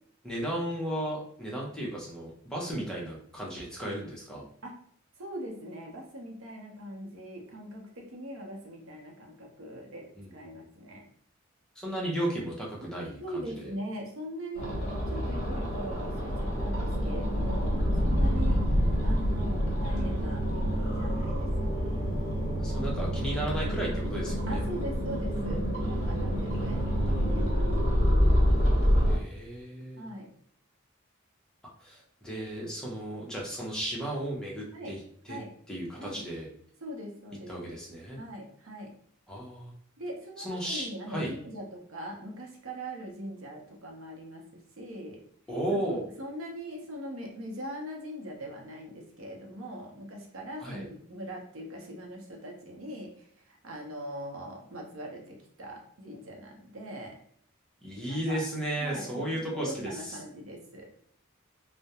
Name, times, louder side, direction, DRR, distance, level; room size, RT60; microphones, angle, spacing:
voice 1, 0.2-4.4 10.2-10.5 11.8-13.7 21.1-21.3 22.6-24.9 26.5-26.6 26.9-27.4 29.1-30.0 31.8-35.0 35.3-35.4 35.7-36.5 37.5-38.2 39.3-39.7 40.4-41.3 45.5-46.0 50.6-50.9 57.8-60.2, right 1 dB, 5° left, -4 dB, 0.6 m, -35 dB
voice 2, 5.2-11.0 13.2-14.8 15.1-18.6 19.0-21.5 24.5-28.0 30.0-30.3 34.7-35.0 35.3-35.5 36.0-36.2 36.8-37.8 38.2-38.9 40.0-45.2 45.7-57.2 58.1-58.4 58.8-60.9, equal, 75° right, 1 dB, 0.7 m, -41 dB
sound 1, 14.5-29.2, equal, 35° left, 0.9 m, -27 dB
2.3 x 2.1 x 2.8 m, 0.66 s
head